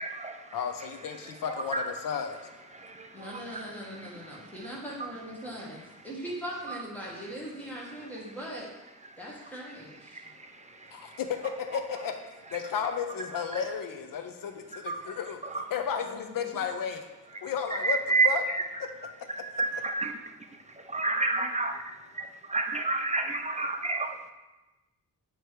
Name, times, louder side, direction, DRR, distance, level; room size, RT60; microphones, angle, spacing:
voice 1, 0.0-4.1 5.7-6.1 6.7-6.8 7.2-7.4 7.8-8.3 9.0-10.9 11.7-12.1 12.5-12.6 13.5-13.6 14.7-15.6 17.3-24.3, right 3 dB, 25° right, 5 dB, 0.3 m, -33 dB
voice 2, 0.5-2.4 11.7-12.1 12.5-15.4 15.7-17.1 17.4-18.0 18.2-18.4, left 7 dB, 85° left, 6 dB, 0.7 m, -33 dB
voice 3, 3.1-8.7 9.2-10.2 16.0-16.4 21.4-21.5, equal, 5° left, -5 dB, 1.4 m, -40 dB
8.3 x 3.1 x 4.6 m, 1.1 s
wide cardioid pair, 155°, 33 cm